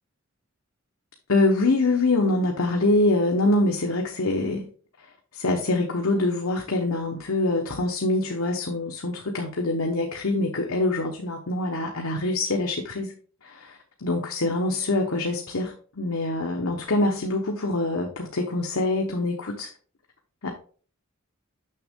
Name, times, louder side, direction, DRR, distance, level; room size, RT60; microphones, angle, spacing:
voice 1, 1.3-4.7 5.3-13.1 13.4-19.7 20.4-20.5, left 2 dB, 90° left, 1.0 m, -25 dB
6.7 x 6.2 x 3.6 m
head